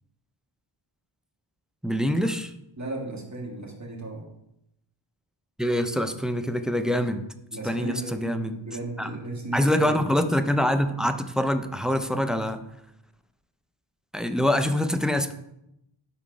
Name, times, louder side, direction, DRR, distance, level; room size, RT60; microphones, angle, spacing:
voice 1, 1.8-2.5 5.6-7.3 7.6-8.6 9.0-9.1 9.5-12.6 14.1-15.3, equal, ahead, 8 dB, 0.4 m, -25 dB
voice 2, 2.8-4.2 7.5-10.0, right 2 dB, 35° right, -1 dB, 1.6 m, -35 dB
5.9 x 4.3 x 4.9 m, 0.82 s
wide cardioid pair, 55°, 48 cm